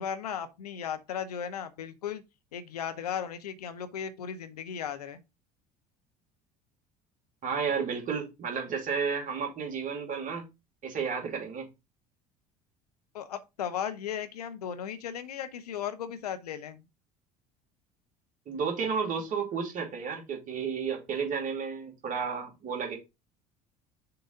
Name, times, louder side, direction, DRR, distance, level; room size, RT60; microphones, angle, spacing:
voice 1, 0.0-2.2 2.5-5.2 13.1-16.8, left 8 dB, 75° left, 0.7 m, -36 dB
voice 2, 7.4-10.5 10.8-11.7 18.5-23.0, right 6 dB, 40° right, 2.6 m, -32 dB
6.7 x 3.8 x 3.9 m
figure-of-eight pair, 60°, 20 cm